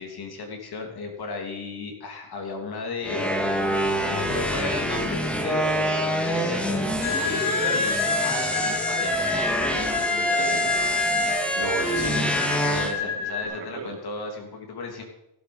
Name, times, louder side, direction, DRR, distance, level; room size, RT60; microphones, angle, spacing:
voice 1, 0.0-3.6 4.0-9.1 9.7-10.8 12.7-15.0, left 4 dB, 55° left, 2 dB, 3.1 m, -35 dB
sound 1, 3.0-12.9, equal, ahead, 1.8 m, -26 dB
sound 2, 7.0-13.4, left 5 dB, 75° left, 2.3 m, -29 dB
voice 2, 10.3-10.7 11.6-13.9, right 6 dB, 60° right, -1 dB, 3.8 m, -36 dB
15.0 x 8.2 x 5.4 m, 0.85 s
cardioid pair, 95°, 47 cm